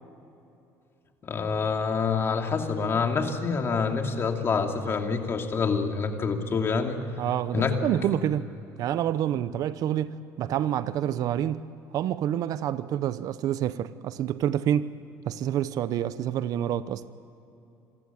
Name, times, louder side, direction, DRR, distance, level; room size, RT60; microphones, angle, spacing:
voice 1, 1.2-7.0 7.5-7.7, left 5 dB, 35° left, 2.7 m, -26 dB
voice 2, 7.2-8.5 8.8-11.6 11.9-14.9 15.3-17.0, right 11 dB, 60° right, 0.9 m, -28 dB
27.0 x 15.0 x 9.8 m
cardioid pair, 105°, 7 cm